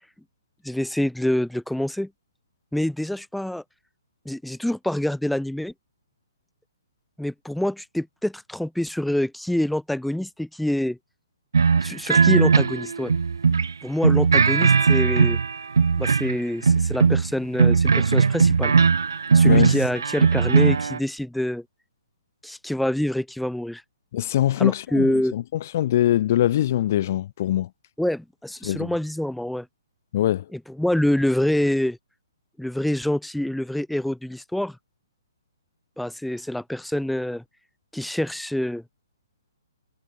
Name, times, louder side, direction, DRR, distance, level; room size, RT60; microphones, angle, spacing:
voice 1, 0.6-2.1 2.7-3.6 4.3-5.7 7.2-11.0 11.8-13.1 13.8-15.4 16.0-18.7 19.3-21.6 22.4-23.8 24.6-25.3 28.0-29.7 30.5-32.0 32.6-34.8 36.0-37.4 37.9-38.8, left 1 dB, ahead, 2.4 m, -26 dB
Blues Loop, 11.5-13.7 14.0-16.3 16.6-21.0, right 5 dB, 60° right, 0.7 m, -19 dB
voice 2, 19.4-19.8 24.1-27.7 28.6-28.9 30.1-30.4, left 12 dB, 40° left, 6.6 m, -23 dB
figure-of-eight pair, 125°, 2 cm